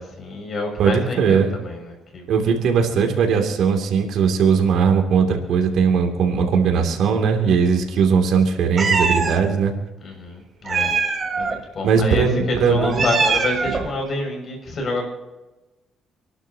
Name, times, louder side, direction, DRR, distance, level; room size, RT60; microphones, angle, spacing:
voice 1, 0.0-2.3 10.0-10.9 11.4-15.0, left 2 dB, 50° left, 3 dB, 6.5 m, -28 dB
voice 2, 0.8-1.6 2.3-9.7 11.8-13.1, right 6 dB, 80° right, 3 dB, 2.8 m, -19 dB
Meow, 8.8-9.4 10.6-11.6 12.8-13.9, right 4 dB, 40° right, 3.0 m, -22 dB
28.0 x 12.0 x 2.9 m, 1.1 s
cardioid pair, 90°, 0 cm